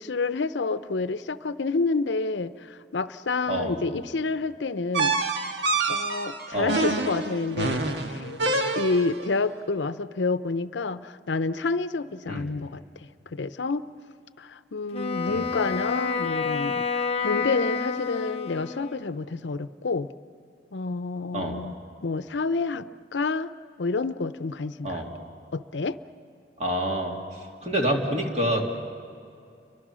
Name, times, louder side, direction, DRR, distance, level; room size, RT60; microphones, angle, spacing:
voice 1, 0.0-5.2 5.9-8.4 8.8-13.8 14.4-20.1 20.7-21.7 22.0-23.5 23.8-25.0 25.5-26.0, left 3 dB, 90° left, 13 dB, 0.7 m, -29 dB
sound 1, 4.9-9.2, right 3 dB, 75° right, 1.5 m, -27 dB
Wind instrument woodwind instrument, 14.9-19.1, left 5 dB, 35° left, 0.8 m, -29 dB
voice 2, 26.6-27.1 27.6-28.7, right 1 dB, 40° right, 1 dB, 2.8 m, -27 dB
30.0 x 24.0 x 6.3 m, 2.5 s
head